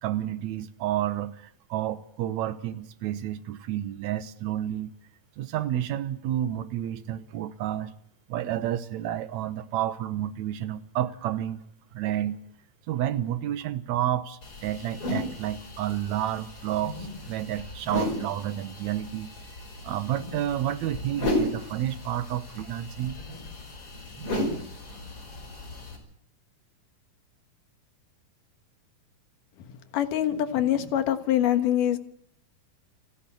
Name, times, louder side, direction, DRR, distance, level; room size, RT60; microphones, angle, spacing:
voice 1, 0.0-4.9 5.4-7.9 8.3-11.6 11.9-12.4 12.9-19.3 19.8-23.2, right 12 dB, 65° right, 11 dB, 2.2 m, -30 dB
sound 1, 14.4-26.0, left 1 dB, 40° left, 6.1 m, -34 dB
voice 2, 29.9-32.0, left 11 dB, 75° left, 8 dB, 2.9 m, -24 dB
29.5 x 10.5 x 8.4 m, 0.70 s
omnidirectional pair, 3.8 m